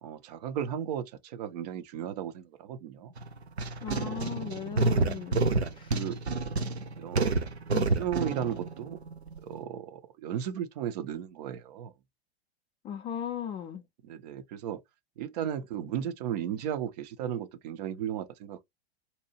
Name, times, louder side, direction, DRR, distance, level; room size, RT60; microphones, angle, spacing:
voice 1, 0.0-3.1 5.6-6.2 7.0-7.5 8.0-9.0 9.4-11.9 14.0-14.8 15.2-18.6, right 10 dB, 40° right, 0.5 m, -35 dB
sound 1, 3.2-9.6, right 3 dB, 85° right, 0.5 m, -29 dB
voice 2, 3.8-5.4 5.7-5.9 7.7-7.9 12.8-13.8, left 9 dB, 15° left, 0.4 m, -37 dB
2.8 x 2.3 x 2.8 m
figure-of-eight pair, 95°, 32 cm